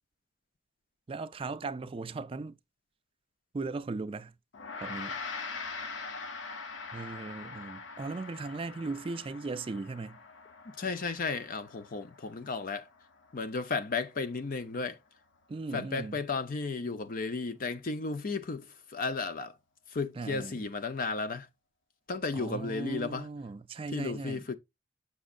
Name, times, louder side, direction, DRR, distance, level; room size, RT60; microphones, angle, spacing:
voice 1, 1.1-2.6 3.5-4.3 4.8-5.2 6.9-10.2 15.5-16.2 20.2-20.7 22.3-24.4, right 3 dB, 30° right, 0.4 m, -38 dB
Gong, 4.5-14.1, left 4 dB, 85° left, 0.8 m, -43 dB
voice 2, 10.6-12.9 13.3-15.0 15.7-19.6 19.9-21.5 22.1-23.3 23.9-24.5, left 4 dB, 50° left, 0.6 m, -34 dB
6.9 x 6.2 x 2.4 m
head